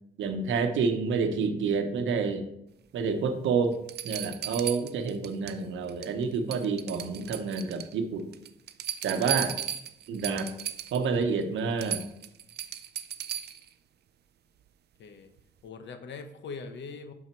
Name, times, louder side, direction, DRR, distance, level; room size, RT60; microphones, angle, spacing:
voice 1, 0.2-2.4 2.9-3.8 4.0-8.3 9.0-9.6 10.1-10.5 10.9-12.0, right 5 dB, 75° right, 7 dB, 0.9 m, -28 dB
sound 1, 3.2-3.3 3.9-5.6 5.9-6.2 6.5-7.9 8.3-11.1 11.4-11.5 11.8-13.7 15.4-15.5, right 10 dB, 55° right, 0.5 m, -36 dB
voice 2, 15.0-15.3 15.6-17.1, left 4 dB, 65° left, 8 dB, 1.0 m, -41 dB
5.9 x 5.7 x 4.5 m, 0.80 s
cardioid pair, 90°, 20 cm